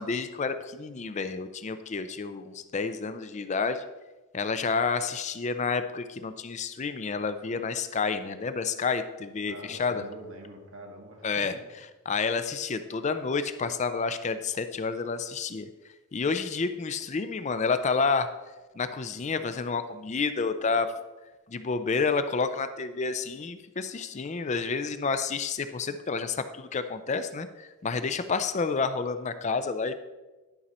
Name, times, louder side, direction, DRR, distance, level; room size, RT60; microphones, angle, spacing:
voice 1, 0.0-3.8 4.3-10.0 11.2-11.5 12.1-15.7 16.1-18.3 18.8-20.9 21.5-29.9, left 4 dB, 35° left, 10 dB, 0.4 m, -29 dB
voice 2, 9.5-11.5, right 1 dB, 65° right, 1 dB, 1.8 m, -45 dB
11.5 x 5.5 x 4.2 m, 1.2 s
head